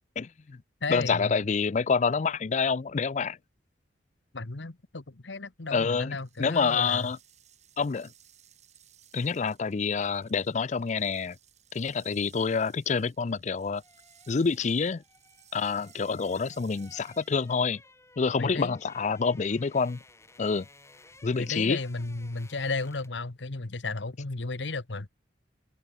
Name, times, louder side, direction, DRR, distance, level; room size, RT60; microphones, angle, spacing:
voice 1, 0.2-0.6 0.9-3.4 5.7-7.2 7.8-8.1 9.1-11.4 11.7-13.8 14.3-15.0 15.5-17.8 18.2-20.0 20.4-20.7 21.2-21.8, left 5 dB, 40° left, 0.4 m, -27 dB
voice 2, 0.8-1.4 4.3-7.1 18.4-18.7 21.4-25.1, left 3 dB, 85° left, 1.3 m, -34 dB
sound 1, 6.1-17.8, right 10 dB, 40° right, 5.2 m, -60 dB
sound 2, 13.3-23.3 23.6-23.8, left 2 dB, 15° left, 6.1 m, -57 dB
open air
head